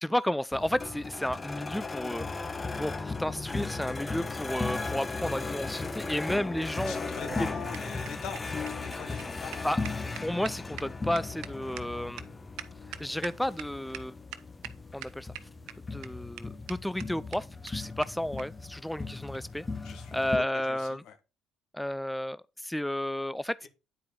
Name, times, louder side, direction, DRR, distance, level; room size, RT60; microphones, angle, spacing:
voice 1, 0.0-2.5 2.8-7.0 9.6-12.3 13.0-14.1 14.9-15.3 15.9-19.6 20.1-21.0 21.7-23.6, left 1 dB, 5° left, 0.3 m, -32 dB
sound 1, 0.5-20.4, left 3 dB, 25° left, 0.9 m, -37 dB
voice 2, 6.9-9.6 19.8-21.2 23.6-23.7, left 6 dB, 70° left, 1.3 m, -43 dB
sound 2, 7.1-13.6 13.9-14.0 14.3-14.7 15.0-15.7 16.0-16.1 16.4-16.5 16.7-16.8 17.0-17.1 17.3-17.4 17.7-17.8 18.0-18.1 18.4-18.5 19.3-19.5, right 12 dB, 75° right, 0.6 m, -42 dB
9.3 x 4.7 x 3.7 m
hypercardioid pair, 55°, 0 cm